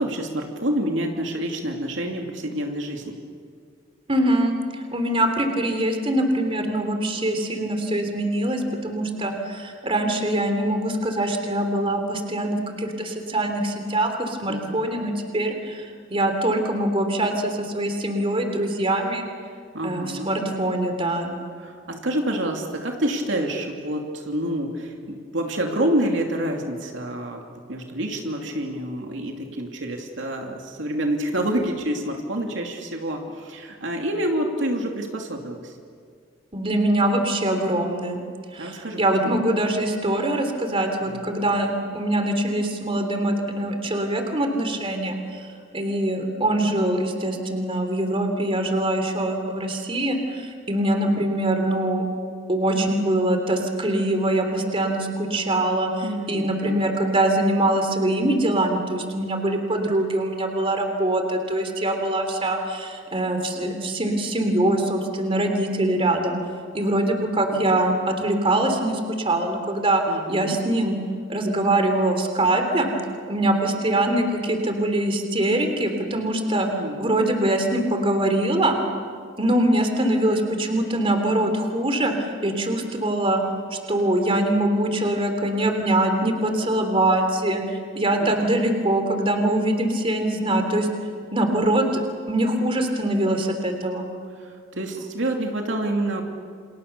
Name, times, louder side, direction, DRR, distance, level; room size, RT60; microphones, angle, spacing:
voice 1, 0.0-3.2 14.5-14.8 19.7-20.3 21.6-35.8 38.6-39.3 41.0-41.4 51.2-51.3 56.0-56.8 67.5-67.7 70.1-70.6 76.7-77.1 88.2-88.3 94.3-96.2, right 1 dB, 70° right, 2 dB, 2.8 m, -28 dB
voice 2, 4.1-19.2 19.8-21.3 36.5-38.2 38.5-45.2 45.7-52.0 52.5-66.4 66.7-70.0 70.3-70.9 71.3-72.9 73.3-76.7 77.0-78.8 79.4-82.1 82.4-83.4 83.9-87.6 87.9-90.9 91.3-92.0 92.3-94.1, right 1 dB, 30° right, 5 dB, 3.3 m, -23 dB
29.5 x 26.5 x 6.8 m, 2.1 s
head